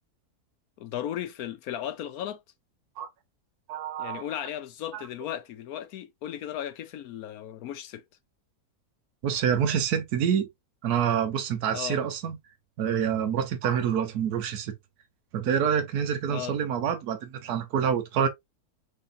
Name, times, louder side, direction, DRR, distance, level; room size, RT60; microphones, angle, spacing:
voice 1, 0.8-2.4 4.0-8.0 11.7-12.0 16.3-16.6, left 11 dB, 70° left, 1.1 m, -36 dB
voice 2, 3.7-4.2 4.9-5.0 9.2-10.5 10.8-12.4 12.8-14.7 15.3-18.3, right 8 dB, 75° right, 1.4 m, -27 dB
4.6 x 3.9 x 2.6 m
omnidirectional pair, 1.7 m